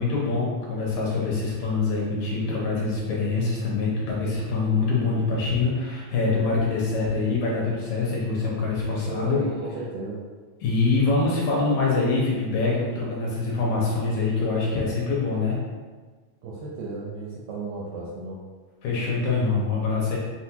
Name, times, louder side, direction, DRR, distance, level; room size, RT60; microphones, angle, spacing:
voice 1, 0.0-9.4 10.6-15.6 18.8-20.2, left 3 dB, 75° left, -5 dB, 1.9 m, -24 dB
voice 2, 9.1-10.2 16.4-18.4, right 3 dB, 80° right, -5 dB, 1.6 m, -34 dB
6.0 x 2.4 x 2.8 m, 1.4 s
omnidirectional pair, 3.9 m